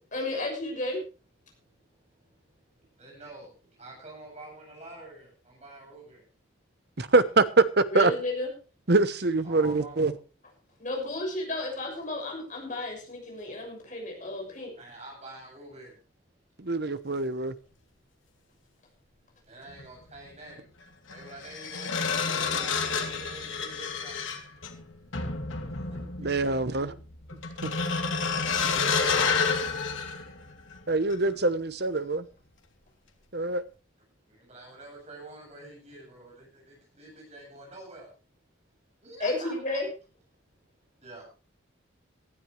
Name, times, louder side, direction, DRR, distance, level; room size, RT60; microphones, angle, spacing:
voice 1, 0.1-1.0 7.9-8.5 10.8-14.7 39.2-39.9, left 2 dB, 40° left, 6.6 m, -32 dB
voice 2, 3.0-3.5 3.8-6.2 9.4-10.1 12.8-12.9 14.8-15.9 19.5-20.6 21.1-24.2 26.4-27.0 34.4-38.1 39.0-39.5 41.0-41.3, right 2 dB, 35° right, 8.0 m, -46 dB
voice 3, 7.0-8.1 8.9-10.1 16.6-17.5 26.2-26.9 27.6-27.7 30.9-32.3 33.3-33.6, right 3 dB, 55° right, 1.0 m, -24 dB
sound 1, 19.7-19.9 21.1-30.8 31.1-31.4, left 5 dB, 80° left, 2.5 m, -30 dB
18.5 x 12.5 x 3.3 m
head